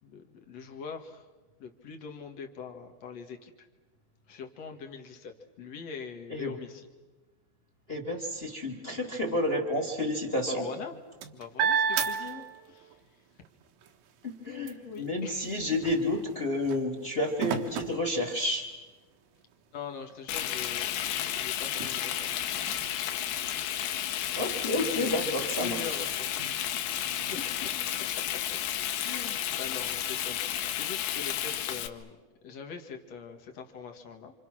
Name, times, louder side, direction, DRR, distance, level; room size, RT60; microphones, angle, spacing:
voice 1, 0.0-1.3 1.6-3.7 4.3-6.9 10.4-11.0 11.3-13.0 14.4-15.6 19.7-22.5 24.7-26.4 26.7-26.9 27.3-27.7 28.0-28.3 29.0-32.2 32.4-34.3, left 6 dB, 55° left, 3 dB, 2.0 m, -43 dB
voice 2, 7.9-10.6 14.2-18.7 24.3-26.0, left 1 dB, 20° left, 3 dB, 1.6 m, -30 dB
sound 1, 10.7-13.0 13.4-18.9 19.5-19.6 20.0-27.9, right 7 dB, 85° right, 3.9 m, -37 dB
Frying (food), 20.3-31.9, left 11 dB, 80° left, 3.4 m, -32 dB
29.0 x 27.5 x 6.2 m, 1.3 s
omnidirectional pair, 5.3 m